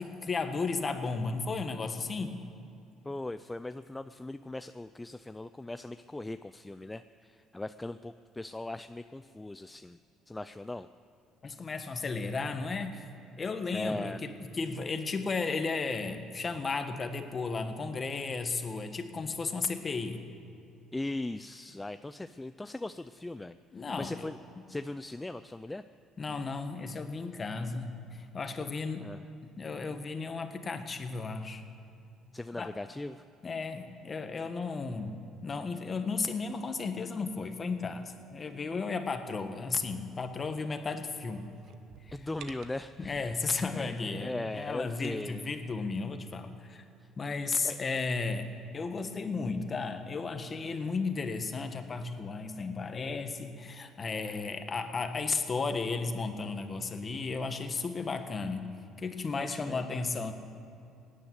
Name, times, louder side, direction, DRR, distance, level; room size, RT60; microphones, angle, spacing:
voice 1, 0.0-2.4 11.4-13.1 13.4-20.2 23.7-24.3 26.2-29.1 29.6-31.6 32.6-32.7 33.4-41.5 43.0-46.8 47.2-60.3, left 4 dB, 30° left, 7 dB, 1.4 m, -34 dB
voice 2, 3.0-10.0 10.3-10.9 13.7-14.2 20.9-24.4 24.7-25.8 29.0-29.2 32.3-33.2 42.1-45.4 47.0-47.1 47.6-47.8 59.3-59.8, left 2 dB, 10° left, 11 dB, 0.4 m, -39 dB
sound 1, 41.1-43.6 44.2-45.4, right 7 dB, 65° right, 1.0 m, -53 dB
17.5 x 10.0 x 8.1 m, 2.7 s
cardioid pair, 95°, 0 cm